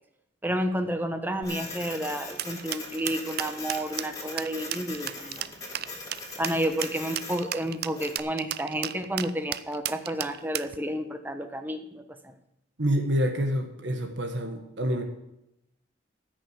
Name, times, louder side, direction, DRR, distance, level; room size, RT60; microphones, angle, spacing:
voice 1, 0.4-5.4 6.4-12.3, right 1 dB, 10° right, 7 dB, 1.0 m, -31 dB
Printer, 1.4-8.2, left 2 dB, 20° left, 2.6 m, -40 dB
sound 1, 2.4-10.8, right 12 dB, 55° right, 0.4 m, -33 dB
voice 2, 12.8-15.0, equal, 70° right, 4 dB, 1.6 m, -27 dB
14.5 x 6.5 x 8.2 m, 0.84 s
head